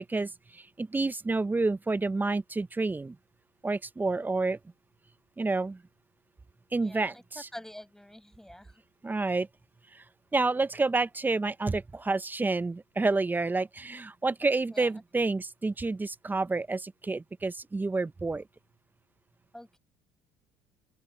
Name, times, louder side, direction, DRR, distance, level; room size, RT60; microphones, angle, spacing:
voice 1, 0.0-3.2 3.6-4.6 5.4-5.8 6.7-7.5 9.0-9.5 9.9-10.0 10.3-18.4, right 3 dB, 15° right, 0.8 m, -29 dB
voice 2, 6.8-7.1 7.5-8.7 14.7-14.9 19.5-19.8, left 1 dB, 5° left, 5.8 m, -46 dB
open air
supercardioid pair, 85°, 12 cm